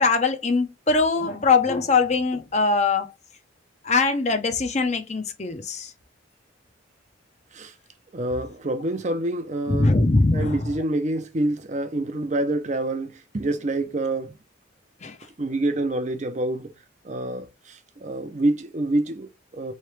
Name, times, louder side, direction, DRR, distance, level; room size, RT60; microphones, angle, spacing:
voice 1, 0.0-3.1 3.8-5.9 9.7-10.6 15.0-15.1, left 3 dB, 35° left, 0.6 m, -21 dB
voice 2, 8.1-10.0 10.3-14.4 15.4-16.7 17.0-19.7, right 1 dB, 35° right, 0.5 m, -27 dB
3.7 x 3.2 x 3.1 m
head